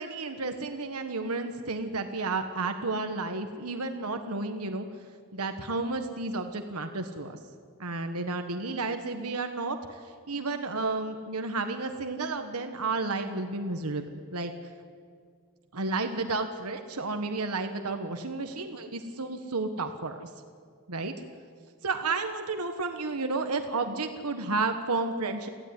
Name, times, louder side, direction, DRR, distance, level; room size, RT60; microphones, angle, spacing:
voice 1, 0.0-4.9 5.3-7.4 7.8-14.0 14.3-14.5 15.7-20.3 20.9-21.1 21.8-25.5, right 3 dB, 85° right, 6 dB, 1.5 m, -32 dB
24.5 x 15.5 x 9.8 m, 2.1 s
head